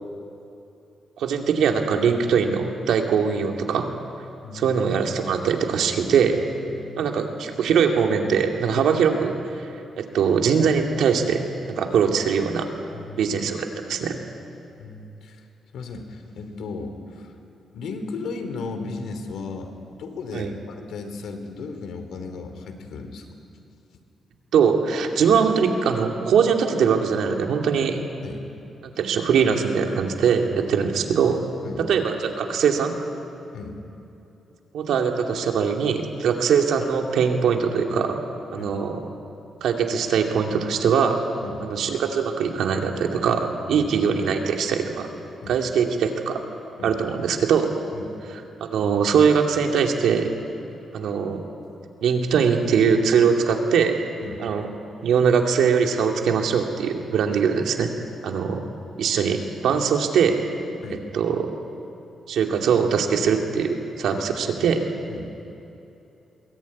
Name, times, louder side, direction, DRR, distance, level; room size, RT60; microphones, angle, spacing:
voice 1, 1.2-3.9 4.5-6.4 7.0-9.7 10.0-12.7 13.2-14.2 20.3-20.5 24.5-28.0 28.8-31.4 31.9-32.9 34.7-38.2 38.5-39.0 39.6-41.2 41.6-45.1 45.5-46.4 46.8-47.7 48.6-50.3 50.9-51.4 52.0-54.0 54.4-54.7 55.0-57.9 58.2-58.6 59.0-60.4 61.1-61.5 62.3-64.8, right 6 dB, 80° right, 3 dB, 2.5 m, -21 dB
voice 2, 4.4-4.8 6.7-7.1 12.9-13.2 14.8-15.4 15.7-17.3 17.7-19.7 20.0-23.3 25.2-25.4 28.2-28.4 31.6-31.8 33.5-33.8 38.6-38.8 41.4-41.7 43.7-43.9 45.4-45.6 46.8-47.0 47.9-48.1 54.2-54.4 60.8-61.0 64.1-64.2 65.1-65.3, left 4 dB, 75° left, 7 dB, 2.9 m, -35 dB
22.5 x 19.0 x 9.6 m, 2.8 s
wide cardioid pair, 180°, 0 cm